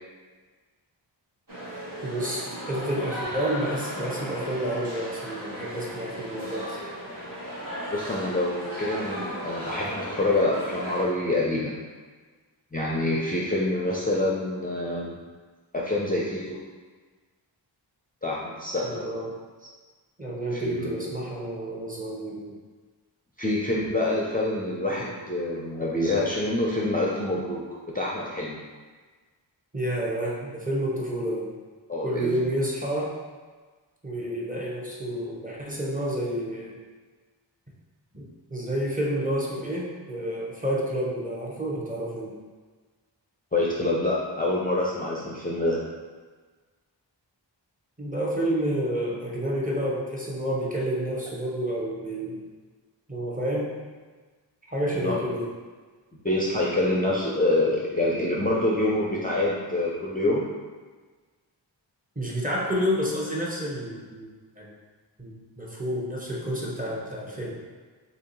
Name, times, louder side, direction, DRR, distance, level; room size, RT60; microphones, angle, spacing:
sound 1, 1.5-11.0, equal, 45° right, 1.3 m, -36 dB
voice 1, 2.0-6.8 18.8-19.3 19.6-19.7 20.2-22.5 29.7-31.5 32.0-33.1 34.0-36.8 38.1-42.4 48.0-52.4 53.1-53.8 54.7-55.5 62.2-64.3 64.6-64.7 65.2-67.6, right 1 dB, 20° right, -5 dB, 0.8 m, -29 dB
voice 2, 7.9-11.7 12.7-15.1 15.7-16.6 18.2-19.0 20.5-21.0 23.4-27.6 27.9-28.6 31.9-32.4 43.5-45.8 54.9-55.2 56.2-60.4, left 2 dB, 20° left, -5 dB, 0.5 m, -26 dB
3.0 x 2.7 x 3.9 m, 1.4 s
wide cardioid pair, 45°, 45 cm